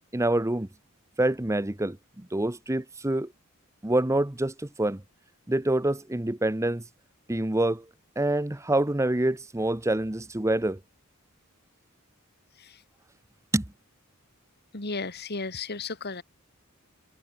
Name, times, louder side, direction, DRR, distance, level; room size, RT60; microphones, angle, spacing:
voice 1, 0.1-0.7 1.2-3.3 3.8-5.0 5.5-6.8 7.3-7.9 8.2-10.8 13.5-13.6, right 1 dB, 15° right, 0.8 m, -26 dB
voice 2, 14.7-16.2, left 4 dB, 50° left, 2.5 m, -34 dB
head